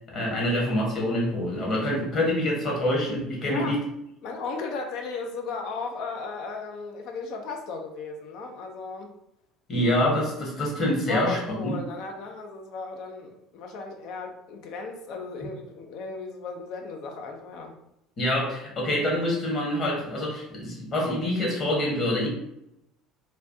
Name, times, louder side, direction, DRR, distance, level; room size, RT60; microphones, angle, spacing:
voice 1, 0.1-3.8 9.7-11.8 18.2-22.3, left 1 dB, 45° left, -2 dB, 1.3 m, -26 dB
voice 2, 4.2-9.2 11.1-17.7, left 4 dB, 60° left, 3 dB, 0.4 m, -36 dB
3.2 x 2.4 x 2.6 m, 0.82 s
hypercardioid pair, 65°, 0 cm